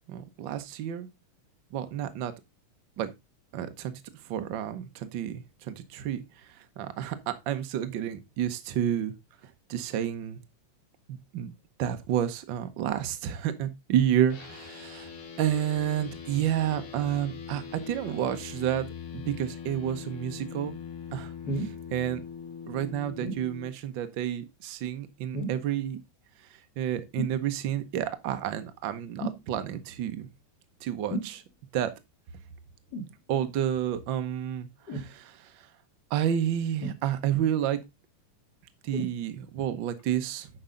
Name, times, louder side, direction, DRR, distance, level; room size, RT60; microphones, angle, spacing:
voice 1, 0.1-1.1 1.7-2.3 3.0-3.1 3.5-3.9 4.3-9.1 9.7-10.4 11.1-11.5 11.8-15.1 15.4-18.9 19.1-20.7 21.1-22.2 22.7-26.0 26.8-30.3 30.8-31.4 31.7-31.9 33.3-35.5 36.1-37.8 38.8-40.5, right 10 dB, 70° right, 1.1 m, -30 dB
sound 1, 14.3-23.7, left 7 dB, 80° left, 3.6 m, -42 dB
sound 2, 21.5-21.8 23.2-23.5 25.3-25.7 27.2-27.4 29.2-29.5 31.1-31.4 32.9-33.2 34.9-35.1 36.8-37.4 38.9-39.2 40.0-40.1, right 1 dB, 40° left, 1.8 m, -34 dB
9.4 x 5.7 x 3.8 m
omnidirectional pair, 3.4 m